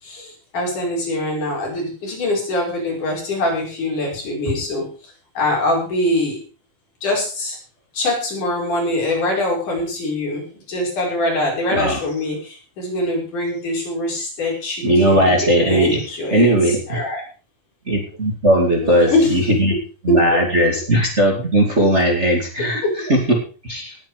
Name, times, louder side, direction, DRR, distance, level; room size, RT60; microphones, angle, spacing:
voice 1, 0.0-6.4 7.0-7.6 7.9-17.2 18.8-19.4 20.1-20.2 22.8-22.9, left 1 dB, 75° left, -2 dB, 6.9 m, -23 dB
voice 2, 14.8-16.0 16.3-17.0 17.9-19.7 20.0-22.8 23.1-24.0, right 1 dB, 25° right, 0 dB, 2.5 m, -17 dB
18.5 x 8.6 x 5.0 m, 0.37 s
omnidirectional pair, 3.6 m